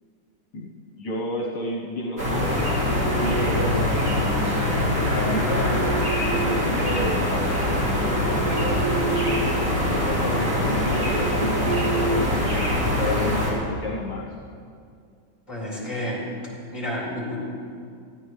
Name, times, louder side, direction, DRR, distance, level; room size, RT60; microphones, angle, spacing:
voice 1, 1.0-4.6 4.9-5.9 6.3-9.3 9.9-14.3, left 1 dB, 65° left, -3 dB, 1.7 m, -31 dB
sound 1, 2.2-13.5, left 1 dB, 50° right, 3.4 m, -23 dB
sound 2, 2.6-4.1 5.1-7.3 7.7-9.6 9.9-10.1 10.6-13.0, right 6 dB, 70° right, 1.1 m, -32 dB
voice 2, 15.5-16.3 16.7-17.4, left 1 dB, 15° left, -4 dB, 4.2 m, -30 dB
19.5 x 14.5 x 3.3 m, 2.3 s
omnidirectional pair, 2.0 m